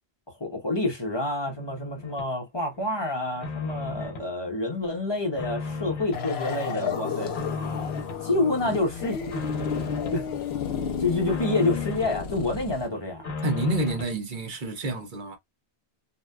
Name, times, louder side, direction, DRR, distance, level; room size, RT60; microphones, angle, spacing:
voice 1, 0.4-7.3 8.2-9.5 9.8-10.3 11.0-13.2, left 2 dB, 30° left, 0.7 m, -28 dB
sound 1, 1.5-2.3 2.7-4.3 4.7-6.3 6.7-8.2 8.6-10.2 10.6-12.2 12.6-14.2, left 3 dB, 55° left, 1.1 m, -36 dB
sound 2, 6.1-12.9, left 7 dB, 80° left, 0.9 m, -32 dB
voice 2, 13.4-15.4, right 2 dB, 55° right, 0.9 m, -28 dB
2.6 x 2.2 x 2.2 m
omnidirectional pair, 1.1 m